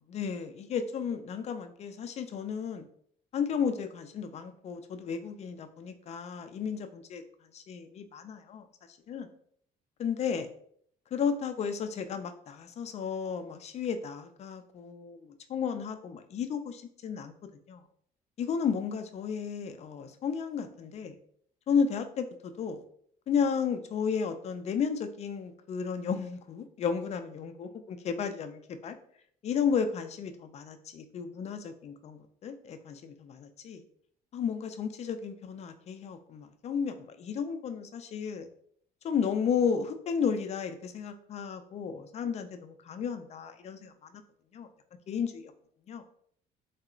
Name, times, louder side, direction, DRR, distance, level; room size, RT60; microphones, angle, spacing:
voice 1, 0.0-2.9 3.3-7.2 7.5-8.7 9.1-9.3 10.0-10.5 11.1-17.3 17.7-17.8 18.4-21.1 21.7-22.8 23.3-29.0 29.4-33.8 34.3-38.5 39.0-44.2 44.5-44.7 45.1-45.5 45.9-46.0, left 6 dB, 40° left, 7 dB, 0.4 m, -33 dB
3.7 x 2.0 x 2.4 m, 0.63 s
cardioid pair, 110°, 17 cm